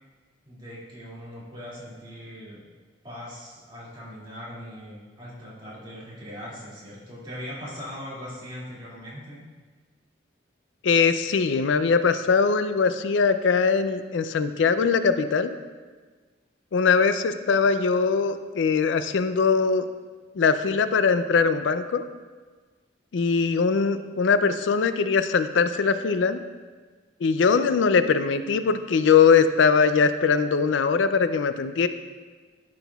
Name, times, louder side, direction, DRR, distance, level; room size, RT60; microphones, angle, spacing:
voice 1, 0.4-2.6 3.0-9.4, equal, 25° right, -8 dB, 2.3 m, -40 dB
voice 2, 10.8-15.6 16.7-19.8 20.4-22.0 23.1-26.4 27.2-31.9, left 5 dB, 75° left, 11 dB, 0.4 m, -21 dB
11.5 x 6.2 x 2.3 m, 1.4 s
head